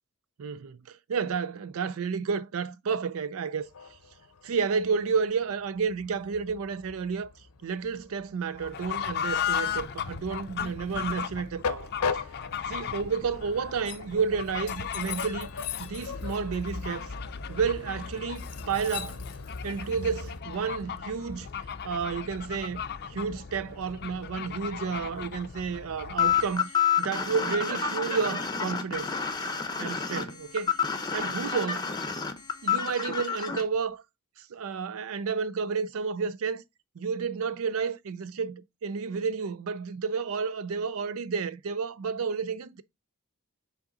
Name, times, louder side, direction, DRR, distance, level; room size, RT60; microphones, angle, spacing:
voice 1, 0.4-3.7 4.4-7.3 7.6-12.2 12.7-15.5 15.8-17.1 17.5-19.2 19.6-21.5 21.8-22.8 23.1-29.1 29.8-30.7 31.1-31.9 32.6-34.0 34.4-36.6 37.0-42.8, right 5 dB, 65° right, 0.4 m, -31 dB
Train, 3.6-20.4, left 5 dB, 80° left, 0.7 m, -39 dB
Fowl / Bird, 8.5-26.6, left 8 dB, 50° left, 0.5 m, -37 dB
sound 1, 26.2-33.6, left 7 dB, 20° left, 0.7 m, -28 dB
7.3 x 3.8 x 3.9 m
head